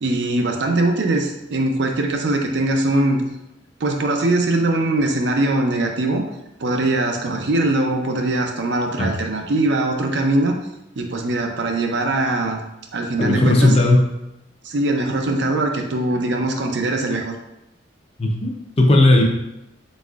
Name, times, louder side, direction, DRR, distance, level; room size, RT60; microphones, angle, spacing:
voice 1, 0.0-3.2 3.8-6.2 6.6-10.6 11.0-12.6 12.9-13.8 14.6-17.3, right 2 dB, 65° right, 3 dB, 0.6 m, -21 dB
voice 2, 13.2-14.0 18.2-18.5 18.8-19.2, left 2 dB, 30° left, 1 dB, 0.5 m, -15 dB
4.1 x 4.1 x 2.4 m, 0.89 s
head